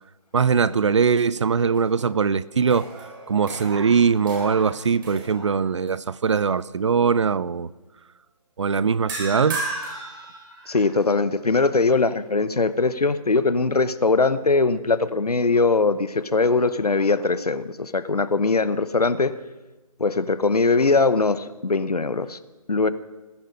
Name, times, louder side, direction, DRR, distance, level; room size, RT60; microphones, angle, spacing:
voice 1, 0.3-2.9 3.3-7.7 8.6-9.6, right 6 dB, 50° right, 19 dB, 0.5 m, -21 dB
sound 1, 1.6-2.3 2.6-5.9 6.4-6.6 9.1-11.0, right 2 dB, 30° right, 4.0 m, -35 dB
voice 2, 10.7-19.3 20.0-22.4 22.7-22.9, left 3 dB, 80° left, 14 dB, 1.0 m, -21 dB
18.5 x 10.5 x 5.4 m, 1.2 s
figure-of-eight pair, 150°, 19 cm